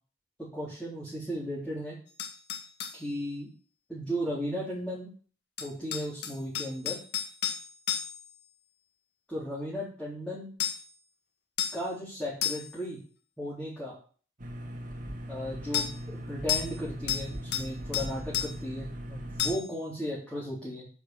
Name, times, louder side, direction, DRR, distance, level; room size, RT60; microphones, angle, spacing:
voice 1, 0.5-2.0 2.9-3.5 3.9-5.1 5.6-7.0 9.3-10.5 11.7-13.0 13.4-14.0 15.3-20.9, equal, 5° left, -7 dB, 3.9 m, -35 dB
sound 1, 2.2-3.0 5.6-8.3 10.6-10.9 11.6-11.9 12.4-12.8 15.7-15.9 16.5-16.8 17.1-17.7 17.9-18.5 19.4-19.7, left 9 dB, 65° left, 1.8 m, -32 dB
sound 2, 14.4-19.6, equal, 45° right, 2.0 m, -39 dB
9.7 x 5.9 x 7.3 m, 0.41 s
head